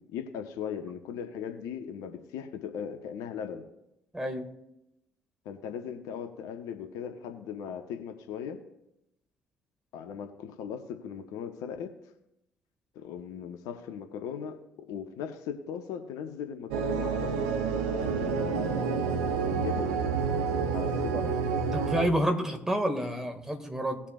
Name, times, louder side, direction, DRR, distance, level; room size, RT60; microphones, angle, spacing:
voice 1, 0.0-3.6 5.4-8.6 9.9-11.9 12.9-14.6 14.9-17.5 17.9-20.1 20.7-21.4, left 8 dB, 60° left, 6 dB, 1.1 m, -38 dB
voice 2, 4.1-4.5 21.1-21.2 21.7-24.0, equal, 5° right, 3 dB, 2.0 m, -29 dB
sound 1, 16.7-22.1, right 5 dB, 70° right, 0.8 m, -29 dB
18.5 x 7.2 x 2.5 m, 0.86 s
figure-of-eight pair, 45°, 7 cm